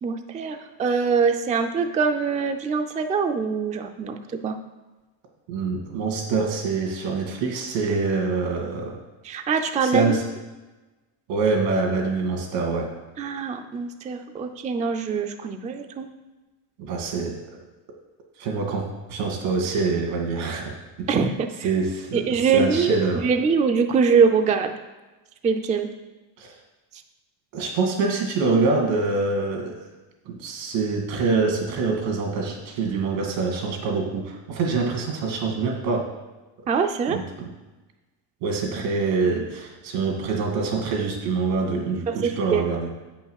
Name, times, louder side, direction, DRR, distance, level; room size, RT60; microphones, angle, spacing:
voice 1, 0.0-4.2 4.4-4.6 9.2-10.2 13.2-16.1 21.1-21.7 22.1-24.8 25.4-25.9 36.7-37.2 42.1-42.6, right 5 dB, 15° right, 6 dB, 0.4 m, -23 dB
voice 2, 5.5-9.0 9.8-10.2 11.3-12.9 16.8-17.6 18.4-18.8 19.1-21.1 21.6-23.3 26.4-26.5 27.5-29.8 30.3-36.1 37.1-37.5 38.4-42.9, right 4 dB, 85° right, 2 dB, 2.3 m, -25 dB
8.1 x 5.7 x 6.4 m, 1.2 s
cardioid pair, 140°, 45 cm